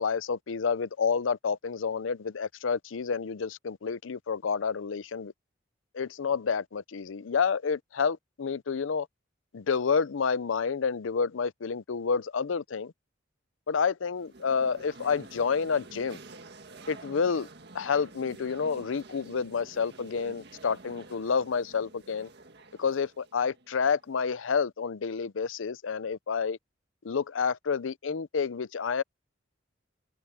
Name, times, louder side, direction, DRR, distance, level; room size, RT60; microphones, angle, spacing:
voice 1, 0.0-5.3 5.9-9.1 9.5-12.9 13.7-16.2 16.9-17.5 17.7-22.3 22.8-26.6 27.0-29.0, left 5 dB, 85° left, 0.6 m, -29 dB
sound 1, 14.2-24.2, right 2 dB, 60° right, 1.9 m, -49 dB
head